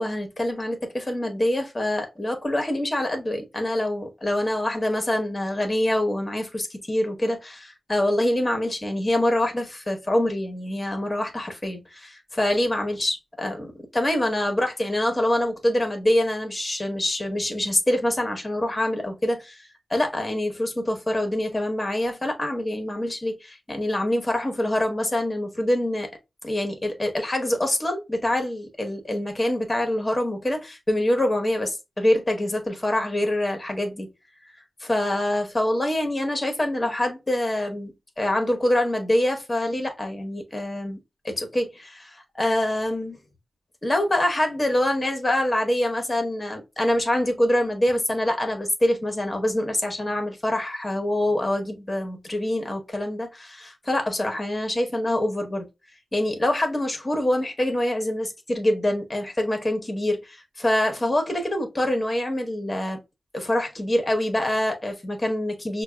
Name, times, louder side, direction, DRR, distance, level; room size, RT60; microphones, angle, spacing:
voice 1, 0.0-26.1 26.4-34.1 34.8-41.0 41.2-43.2 43.8-55.7 56.1-63.0 63.3-65.8, left 1 dB, 20° left, 1.1 m, -25 dB
6.1 x 2.3 x 2.3 m
wide cardioid pair, 105°, 0 cm